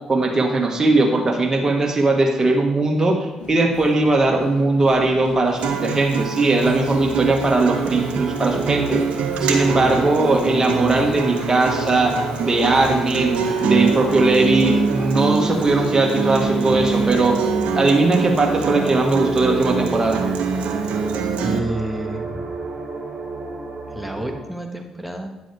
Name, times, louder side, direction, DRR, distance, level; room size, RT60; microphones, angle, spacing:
voice 1, 0.0-9.0 9.4-17.4 17.8-20.3, right 2 dB, 30° right, 1 dB, 1.8 m, -19 dB
sound 1, 3.4-17.6, left 2 dB, 70° left, 2.8 m, -40 dB
Acoustic guitar, 5.6-21.6, right 5 dB, 75° right, 0.9 m, -24 dB
sound 2, 6.6-24.4, right 3 dB, 45° right, 2.8 m, -32 dB
voice 2, 21.4-22.5 23.9-25.3, right 1 dB, 5° right, 4 dB, 1.5 m, -30 dB
9.7 x 7.5 x 3.5 m, 1.1 s
hypercardioid pair, 50°, 2 cm